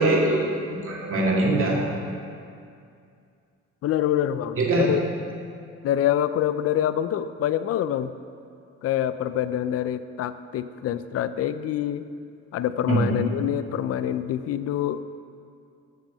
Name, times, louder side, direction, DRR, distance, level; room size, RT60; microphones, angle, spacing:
voice 1, 0.0-1.8 4.6-4.9 12.9-13.1, right 2 dB, 45° right, -3 dB, 2.0 m, -22 dB
voice 2, 3.8-5.0 5.8-8.1 8.8-12.0 12.5-15.0, left 11 dB, 55° left, 13 dB, 0.4 m, -26 dB
7.4 x 6.1 x 6.6 m, 2.4 s
cardioid pair, 90°, 30 cm